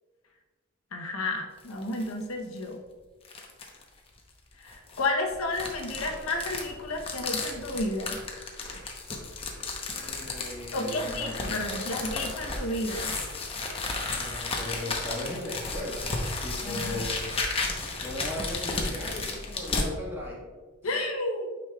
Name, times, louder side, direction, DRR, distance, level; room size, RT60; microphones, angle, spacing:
voice 1, 0.9-2.8 4.6-8.2 10.7-13.1 16.6-17.0 20.8-21.5, left 2 dB, 80° left, 3 dB, 0.8 m, -31 dB
sound 1, 1.6-2.1 2.6-2.7 3.2-3.8 4.7-19.9, left 3 dB, 25° left, 0.8 m, -33 dB
voice 2, 9.9-12.0 14.2-16.1 16.4-17.4 18.0-20.4, left 1 dB, 10° right, -5 dB, 1.5 m, -38 dB
9.0 x 5.0 x 2.3 m, 1.4 s
head